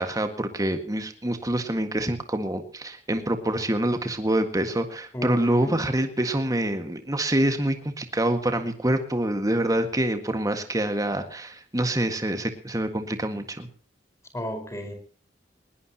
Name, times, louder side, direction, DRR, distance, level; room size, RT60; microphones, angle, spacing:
voice 1, 0.0-13.7, right 1 dB, 20° right, 7 dB, 1.8 m, -26 dB
voice 2, 5.1-5.9 14.3-14.9, equal, 15° left, 6 dB, 4.8 m, -33 dB
20.0 x 20.0 x 3.0 m, 0.43 s
head